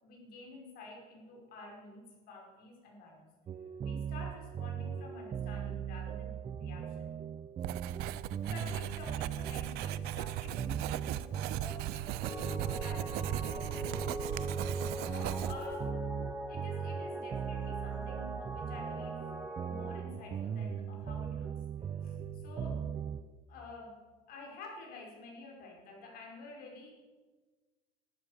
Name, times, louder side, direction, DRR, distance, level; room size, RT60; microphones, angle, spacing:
voice 1, 0.0-3.3 3.6-7.1 8.2-14.1 15.1-15.9 16.5-19.3 19.6-21.6 22.0-22.8 23.5-24.0 24.3-26.9, left 3 dB, 60° left, 0 dB, 5.4 m, -50 dB
sound 1, 3.5-23.2, right 7 dB, 30° right, 0.6 m, -39 dB
Writing, 7.6-15.8, right 15 dB, 65° right, 0.6 m, -39 dB
sound 2, 12.2-20.0, equal, 5° right, 2.1 m, -42 dB
13.5 x 13.0 x 6.6 m, 1.4 s
cardioid pair, 130°, 18 cm